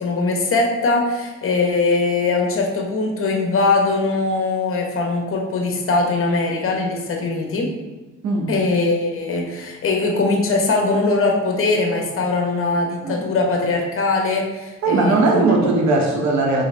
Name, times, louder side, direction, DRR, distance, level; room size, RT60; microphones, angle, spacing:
voice 1, 0.0-7.7 8.5-15.4, left 3 dB, 45° left, 1 dB, 0.9 m, -21 dB
voice 2, 14.8-16.6, right 3 dB, 65° right, 0 dB, 1.0 m, -18 dB
3.9 x 3.4 x 3.2 m, 1.2 s
cardioid pair, 90°, 30 cm